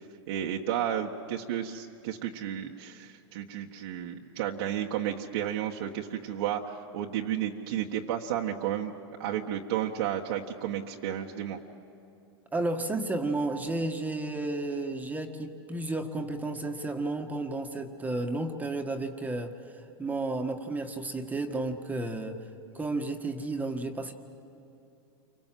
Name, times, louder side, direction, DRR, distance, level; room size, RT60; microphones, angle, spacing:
voice 1, 0.3-8.9 9.2-11.6, right 10 dB, 65° right, -1 dB, 1.6 m, -32 dB
voice 2, 12.5-22.4 22.7-24.1, right 2 dB, 10° right, 5 dB, 1.7 m, -32 dB
29.0 x 25.5 x 7.7 m, 2.8 s
hypercardioid pair, 120°, 14 cm